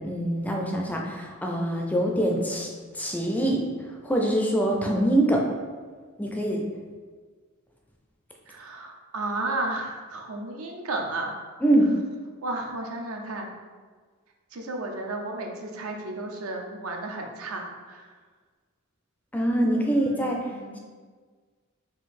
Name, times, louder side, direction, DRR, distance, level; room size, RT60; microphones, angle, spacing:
voice 1, 0.0-2.7 2.9-3.6 4.0-5.4 6.2-6.6 11.6-11.9 19.3-20.4, right 1 dB, 5° left, 0 dB, 0.4 m, -24 dB
voice 2, 8.5-11.3 12.4-13.5 14.5-18.0 19.9-20.8, right 2 dB, 75° right, 2 dB, 0.6 m, -33 dB
3.8 x 2.7 x 4.1 m, 1.5 s
head